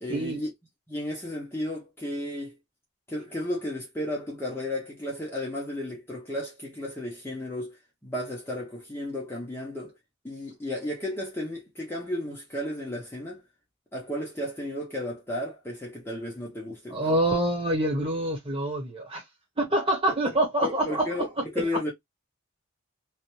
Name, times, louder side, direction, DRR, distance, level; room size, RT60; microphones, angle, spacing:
voice 1, 0.0-0.5 0.9-2.6 3.1-9.9 10.2-13.4 13.9-17.2 20.6-21.9, left 1 dB, 10° left, 0.6 m, -33 dB
voice 2, 16.9-19.2 19.6-21.1 21.6-21.7, right 1 dB, 25° right, 1.1 m, -26 dB
2.4 x 2.2 x 2.9 m
head